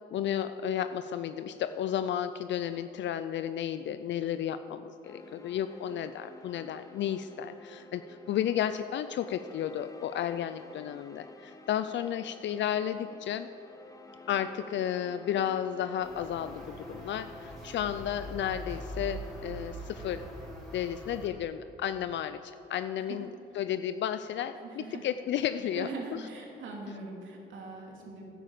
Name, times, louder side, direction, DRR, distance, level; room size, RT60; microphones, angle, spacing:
voice 1, 0.1-13.5 14.3-20.3 20.7-23.3 23.5-26.3, left 10 dB, 65° left, 11 dB, 0.5 m, -33 dB
sound 1, 5.0-20.6, left 2 dB, 15° left, 1.1 m, -52 dB
sound 2, 16.0-21.3, right 1 dB, ahead, 3.7 m, -43 dB
voice 2, 24.5-25.1 25.7-28.3, right 3 dB, 75° right, -1 dB, 2.9 m, -42 dB
11.0 x 10.0 x 7.7 m, 2.9 s
cardioid pair, 90°, 20 cm